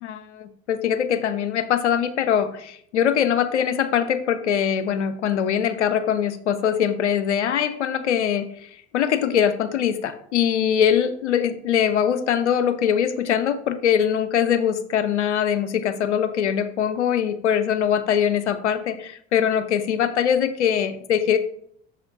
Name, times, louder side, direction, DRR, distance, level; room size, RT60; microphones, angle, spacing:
voice 1, 0.0-8.5 8.9-21.4, left 8 dB, 85° left, 11 dB, 0.6 m, -22 dB
6.2 x 4.2 x 3.9 m, 0.65 s
figure-of-eight pair, 60°, 34 cm